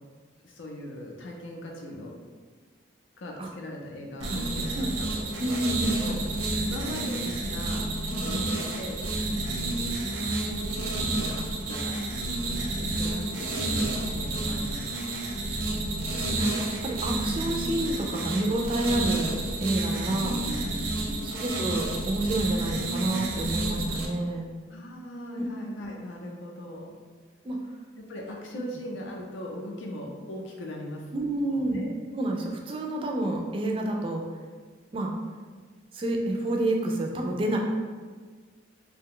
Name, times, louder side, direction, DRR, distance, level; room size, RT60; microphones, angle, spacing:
voice 1, 0.4-2.1 3.2-4.9 5.1-5.7 6.0-6.3 6.6-9.0 9.7-12.0 12.7-14.9 20.2-21.3 24.6-26.9 28.0-31.1 31.5-31.9, left 1 dB, 75° left, 0 dB, 0.5 m, -40 dB
sound 1, 4.2-24.1, right 2 dB, 90° right, 0.6 m, -30 dB
voice 2, 5.4-6.2 8.1-8.5 16.3-20.4 21.2-24.5 25.3-25.4 27.4-27.6 31.1-31.9 32.1-34.3 34.9-35.2 35.9-37.6, right 1 dB, 25° right, 1 dB, 0.3 m, -29 dB
2.8 x 2.2 x 3.7 m, 1.5 s
head